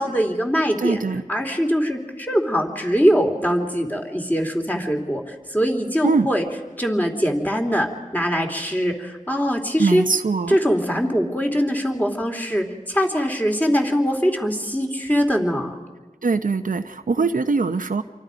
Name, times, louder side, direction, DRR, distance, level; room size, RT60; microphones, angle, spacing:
voice 1, 0.0-1.0 1.3-6.4 6.8-10.0 10.5-15.7 17.2-17.3, equal, 10° left, 2 dB, 3.0 m, -22 dB
voice 2, 0.8-1.2 6.0-6.3 9.8-10.6 16.2-18.0, right 4 dB, 85° right, 8 dB, 0.8 m, -22 dB
28.0 x 24.0 x 5.2 m, 1.3 s
wide cardioid pair, 60°, 14 cm